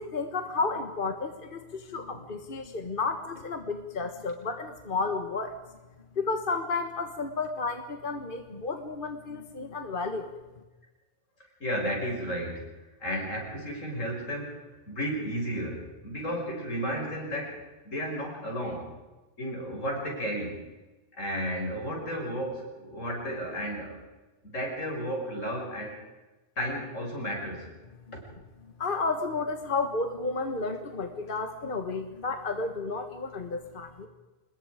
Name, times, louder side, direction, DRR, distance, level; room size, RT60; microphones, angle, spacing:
voice 1, 0.0-5.6 6.1-10.3 28.8-34.1, left 3 dB, 45° left, 6 dB, 1.6 m, -32 dB
voice 2, 11.6-12.6 13.0-14.6 14.9-17.6 17.8-18.9 19.4-20.7 21.2-24.1 24.4-26.0 26.6-27.7 28.1-28.2, equal, 80° left, 0 dB, 6.4 m, -33 dB
26.0 x 21.5 x 5.0 m, 1.1 s
omnidirectional pair, 1.3 m